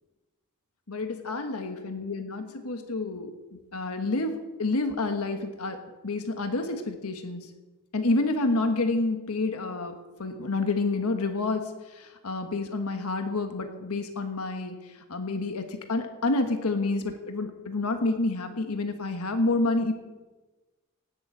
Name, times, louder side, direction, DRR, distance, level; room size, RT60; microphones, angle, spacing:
voice 1, 0.9-3.3 3.7-7.5 7.9-9.9 10.2-14.7 15.1-19.9, left 2 dB, 85° left, 6 dB, 1.3 m, -29 dB
17.5 x 7.1 x 8.2 m, 1.2 s
head